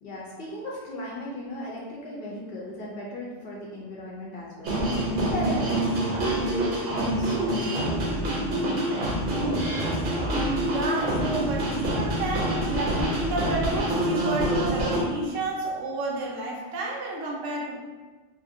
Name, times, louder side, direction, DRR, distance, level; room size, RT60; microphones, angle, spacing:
voice 1, 0.0-4.8 5.2-9.3, equal, 60° left, -4 dB, 0.7 m, -37 dB
sound 1, 4.6-15.0, right 1 dB, 50° right, 0.7 m, -26 dB
voice 2, 10.7-17.7, right 3 dB, 80° right, -2 dB, 1.0 m, -31 dB
2.7 x 2.5 x 2.5 m, 1.4 s
omnidirectional pair, 1.3 m